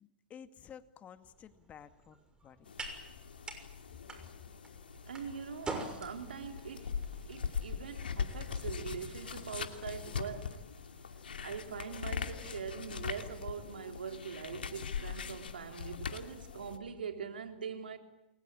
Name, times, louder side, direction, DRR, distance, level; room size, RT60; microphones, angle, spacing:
voice 1, 0.0-2.7 4.2-4.3, left 8 dB, 30° left, 2.1 m, -53 dB
sound 1, 1.2-9.6, right 3 dB, 15° right, 6.3 m, -47 dB
sound 2, 2.6-16.8, left 6 dB, 85° left, 2.6 m, -41 dB
voice 2, 5.0-7.0 7.3-10.7 11.4-18.0, right 6 dB, 85° right, 3.4 m, -43 dB
29.5 x 22.5 x 8.8 m
hypercardioid pair, 110°, 5 cm